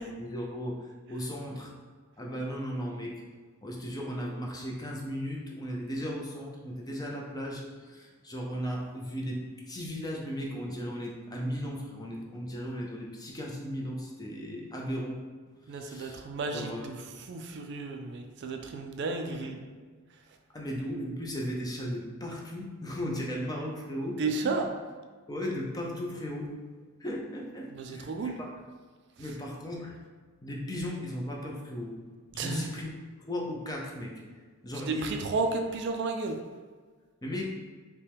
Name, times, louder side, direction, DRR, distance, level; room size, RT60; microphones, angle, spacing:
voice 1, 0.2-1.7 2.2-3.2 3.6-15.2 15.7-16.8 19.3-19.5 20.5-24.6 25.3-26.5 27.0-28.1 28.4-28.5 29.2-30.0 30.4-32.0 32.3-32.9 33.2-34.2 34.6-35.2 37.2-37.4, equal, 15° left, -1 dB, 0.6 m, -36 dB
voice 2, 15.7-19.6 24.2-24.7 27.7-28.4 32.4-32.7 34.8-36.4, right 3 dB, 50° right, 4 dB, 0.4 m, -33 dB
5.5 x 2.2 x 3.4 m, 1.5 s
head